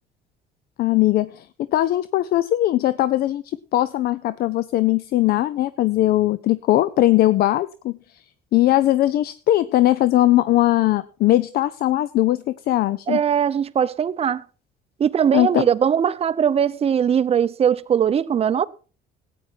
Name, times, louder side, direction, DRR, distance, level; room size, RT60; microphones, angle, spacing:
voice 1, 0.8-1.5 1.7-7.9 8.5-13.2 15.3-15.6, left 15 dB, 65° left, 0.5 m, -19 dB
voice 2, 13.1-14.4 15.0-18.7, right 8 dB, 35° right, 0.6 m, -20 dB
14.0 x 9.2 x 4.5 m
cardioid pair, 110°, 17 cm